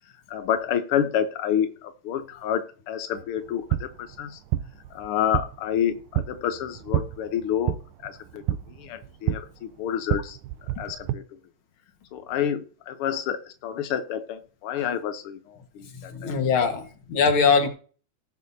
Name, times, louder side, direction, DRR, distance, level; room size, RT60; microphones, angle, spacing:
voice 1, 0.3-4.4 4.9-10.4 10.8-11.4 12.1-16.3 16.6-16.7 17.6-17.7, left 9 dB, 80° left, 8 dB, 1.2 m, -29 dB
sound 1, 3.4-11.1, right 13 dB, 85° right, 2.1 m, -30 dB
voice 2, 16.1-17.7, left 5 dB, 50° left, 4 dB, 2.0 m, -21 dB
19.0 x 6.5 x 2.8 m, 0.40 s
omnidirectional pair, 3.6 m